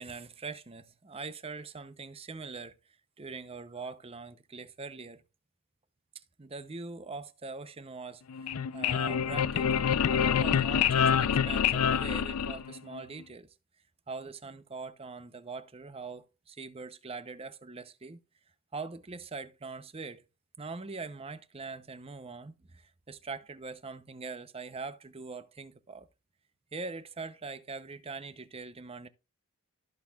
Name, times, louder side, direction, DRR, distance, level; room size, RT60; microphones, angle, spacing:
voice 1, 0.0-2.8 3.2-5.2 6.4-13.5 14.1-18.2 18.7-20.2 20.6-26.1 26.7-29.1, right 4 dB, 25° right, 0.7 m, -42 dB
sound 1, 8.3-13.0, left 7 dB, 80° left, 0.5 m, -27 dB
14.5 x 6.3 x 2.4 m
head